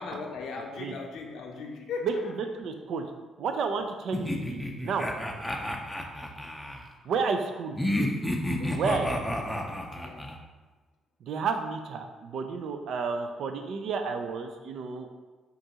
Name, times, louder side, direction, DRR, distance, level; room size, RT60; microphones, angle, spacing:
voice 1, 0.0-2.4 8.6-9.0 10.0-10.3, left 4 dB, 75° left, 1 dB, 0.5 m, -38 dB
voice 2, 2.0-3.1 3.4-5.1 7.0-7.8 8.7-9.4 11.2-15.1, right 5 dB, 70° right, 6 dB, 0.4 m, -31 dB
sound 1, 4.1-6.8 7.8-10.4, left 1 dB, 5° left, 0.5 m, -31 dB
5.2 x 2.5 x 2.9 m, 1.2 s
cardioid pair, 90°, 0 cm